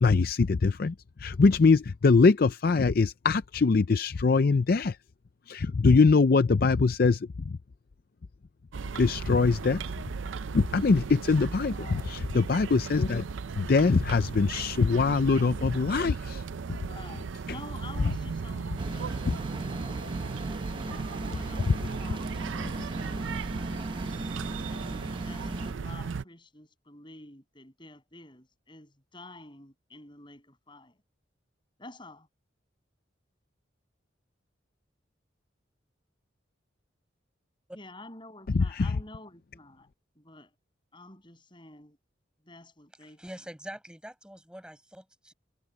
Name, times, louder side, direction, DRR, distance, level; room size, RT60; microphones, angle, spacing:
voice 1, 0.0-5.0 5.5-7.6 8.9-9.8 10.5-13.2 13.6-16.4 38.5-38.9, left 4 dB, 50° left, 0.4 m, -23 dB
sound 1, 8.7-26.2, right 5 dB, 85° right, 0.5 m, -36 dB
voice 2, 11.6-12.2 16.7-20.1 20.8-23.5 24.7-31.0 31.8-32.3 37.7-39.9 40.2-40.6 40.9-42.0 42.4-43.2, left 2 dB, 25° left, 7.9 m, -49 dB
sound 2, 18.8-25.7, right 1 dB, 25° right, 0.9 m, -37 dB
voice 3, 43.2-45.3, equal, 5° right, 5.3 m, -44 dB
head